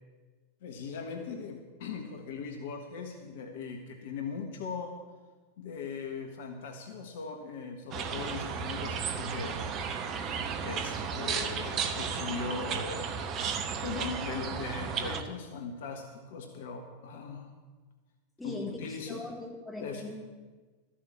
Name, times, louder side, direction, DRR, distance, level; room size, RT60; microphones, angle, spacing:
voice 1, 0.6-4.9 5.6-9.6 10.6-13.1 13.8-17.5 18.4-19.2 19.8-20.0, left 5 dB, 55° left, 5 dB, 1.5 m, -39 dB
sound 1, 7.9-15.2, right 6 dB, 35° right, 1.1 m, -34 dB
voice 2, 18.4-20.2, left 2 dB, 5° left, -1 dB, 2.9 m, -40 dB
14.0 x 7.7 x 8.6 m, 1.3 s
figure-of-eight pair, 90°, 0 cm